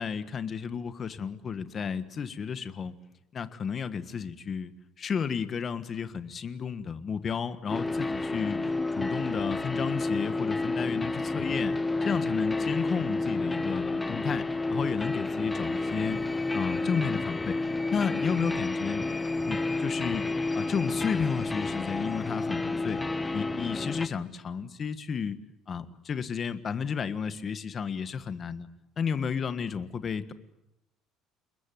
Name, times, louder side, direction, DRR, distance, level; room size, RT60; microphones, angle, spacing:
voice 1, 0.0-2.9 3.3-4.7 5.0-16.2 16.5-17.6 17.9-19.0 19.5-20.2 20.5-23.0 23.3-25.4 25.7-28.7 29.0-30.3, left 6 dB, 30° left, 12 dB, 1.5 m, -32 dB
sound 1, 7.7-24.1, left 2 dB, 10° left, 1.2 m, -30 dB
29.0 x 21.0 x 9.4 m, 0.89 s
cardioid pair, 155°, 0 cm